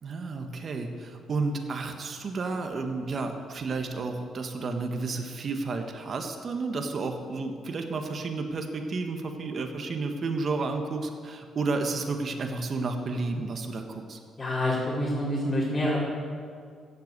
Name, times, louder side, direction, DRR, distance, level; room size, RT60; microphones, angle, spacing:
voice 1, 0.0-14.2, right 3 dB, 50° right, 4 dB, 1.5 m, -31 dB
voice 2, 14.4-16.0, left 1 dB, 30° left, -9 dB, 4.4 m, -27 dB
14.5 x 8.2 x 8.2 m, 2.2 s
cardioid pair, 90°, 0 cm